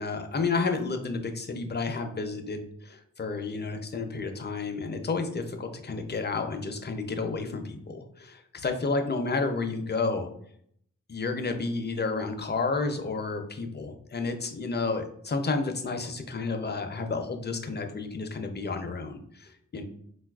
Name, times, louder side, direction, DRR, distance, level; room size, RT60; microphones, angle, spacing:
voice 1, 0.0-10.3 11.1-19.8, left 3 dB, 30° left, 5 dB, 0.4 m, -31 dB
3.8 x 2.3 x 2.3 m, 0.67 s
wide cardioid pair, 65°, 32 cm